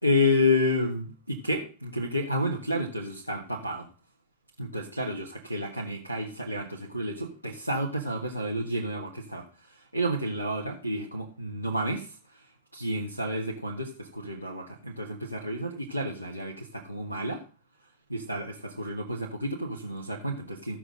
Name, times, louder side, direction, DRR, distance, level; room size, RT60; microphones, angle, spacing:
voice 1, 0.0-3.9 4.6-12.4 12.7-17.4 18.1-20.8, left 1 dB, 90° right, -4 dB, 1.4 m, -30 dB
15.0 x 6.2 x 3.8 m, 0.36 s
figure-of-eight pair, 90°, 0 cm